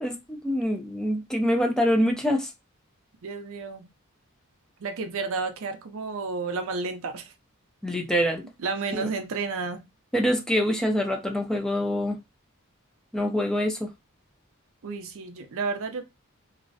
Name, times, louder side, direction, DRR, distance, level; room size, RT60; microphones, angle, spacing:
voice 1, 0.0-2.5 7.8-8.4 8.9-9.1 10.1-12.1 13.1-13.9, equal, 5° left, 0.3 m, -25 dB
voice 2, 3.2-3.9 4.8-7.3 8.6-9.8 14.8-16.0, right 4 dB, 65° right, 0.5 m, -31 dB
2.4 x 2.0 x 2.5 m
head